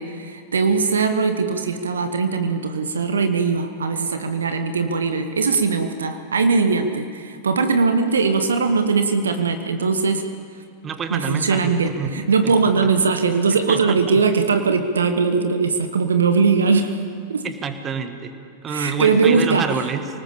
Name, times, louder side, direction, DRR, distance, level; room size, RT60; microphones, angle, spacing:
voice 1, 0.0-10.3 11.1-17.0 17.3-17.5 18.7-19.6, right 4 dB, 70° right, 7 dB, 1.2 m, -20 dB
voice 2, 10.8-12.5 13.5-14.2 17.4-18.3 18.6-20.1, right 6 dB, 25° right, 8 dB, 1.8 m, -28 dB
26.5 x 19.0 x 7.3 m, 2.3 s
figure-of-eight pair, 90°, 0 cm